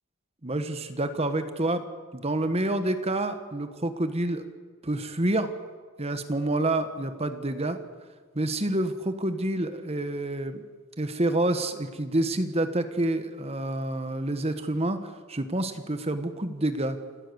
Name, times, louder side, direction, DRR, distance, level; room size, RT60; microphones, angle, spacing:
voice 1, 0.4-1.8 2.1-4.4 4.8-5.5 6.0-7.8 8.3-10.6 11.0-17.0, right 1 dB, 30° right, 9 dB, 1.3 m, -28 dB
28.0 x 12.5 x 8.1 m, 1.5 s
head